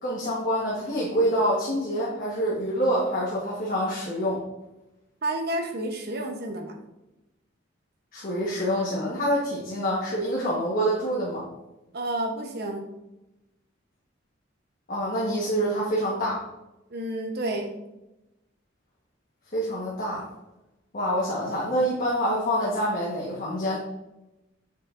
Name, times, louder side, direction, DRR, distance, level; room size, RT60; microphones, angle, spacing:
voice 1, 0.0-4.4 8.1-11.4 14.9-16.4 19.5-20.2 20.9-23.8, equal, 50° left, -5 dB, 1.3 m, -26 dB
voice 2, 5.2-6.8 11.9-12.9 16.9-17.7, right 1 dB, 55° right, 3 dB, 0.9 m, -30 dB
6.9 x 5.6 x 2.5 m, 0.96 s
head